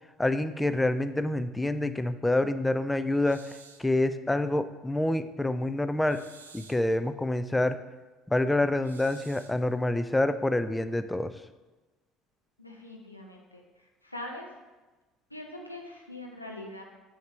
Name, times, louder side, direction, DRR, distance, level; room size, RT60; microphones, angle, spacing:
voice 1, 0.2-6.2 6.5-7.8 8.3-11.3, left 1 dB, 10° left, 11 dB, 0.4 m, -27 dB
sound 1, 3.2-3.9 6.0-6.9 8.8-9.6, right 5 dB, 80° right, 0.4 m, -52 dB
voice 2, 12.6-14.6 15.3-16.8, left 1 dB, 90° left, 0 dB, 0.7 m, -43 dB
6.5 x 6.4 x 3.2 m, 1.2 s
figure-of-eight pair, 60°, 0 cm